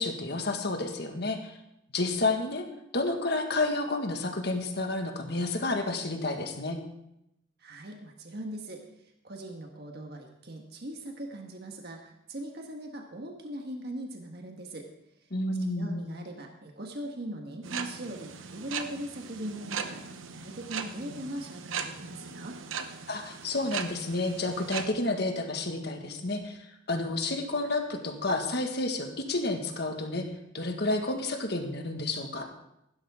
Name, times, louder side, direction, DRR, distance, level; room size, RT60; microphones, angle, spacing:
voice 1, 0.0-1.5 1.9-2.7 2.9-6.8 15.3-16.0 23.1-26.6 26.9-30.3 30.5-32.5, left 2 dB, 55° left, 4 dB, 1.7 m, -30 dB
voice 2, 7.6-8.8 9.2-14.9 15.5-20.0 20.3-22.6, right 1 dB, 55° right, 2 dB, 1.5 m, -40 dB
sound 1, 17.6-24.9, right 6 dB, 80° right, 1.0 m, -39 dB
15.5 x 12.5 x 3.7 m, 0.81 s
head